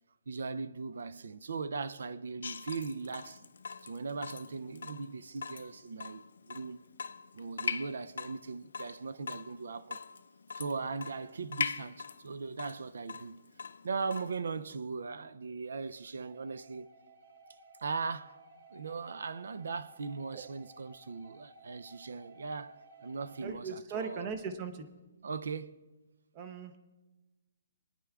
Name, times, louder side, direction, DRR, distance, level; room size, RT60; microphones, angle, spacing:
voice 1, 0.3-3.4 3.8-6.8 7.3-10.0 10.6-13.4 13.8-16.9 17.8-18.4 18.7-24.3 25.2-25.8, right 4 dB, 70° right, 0.4 m, -39 dB
Water tap faucet / Drip, 2.4-14.4, left 5 dB, 70° left, 0.4 m, -42 dB
sound 1, 16.2-23.5, right 2 dB, 45° right, 0.9 m, -57 dB
voice 2, 23.4-24.9 26.3-26.8, right 5 dB, 20° right, 0.6 m, -39 dB
25.5 x 9.7 x 2.3 m
hypercardioid pair, 180°, 0 cm